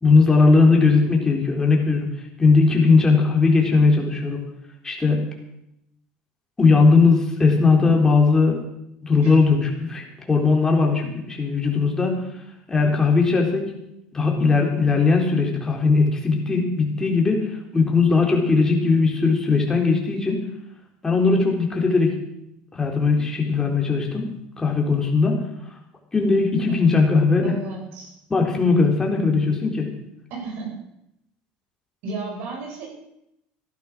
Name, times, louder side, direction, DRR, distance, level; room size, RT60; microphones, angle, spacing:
voice 1, 0.0-2.1 2.4-4.4 4.8-5.2 6.6-8.6 9.0-12.3 12.7-13.8 14.1-20.5 21.0-22.2 22.7-25.4 26.1-27.5 28.3-29.9, left 4 dB, 15° left, 1 dB, 3.9 m, -19 dB
voice 2, 27.4-28.1 30.3-30.8 32.0-32.9, right 3 dB, 65° right, -1 dB, 7.9 m, -33 dB
14.5 x 11.5 x 6.2 m, 0.82 s
supercardioid pair, 110°, 4 cm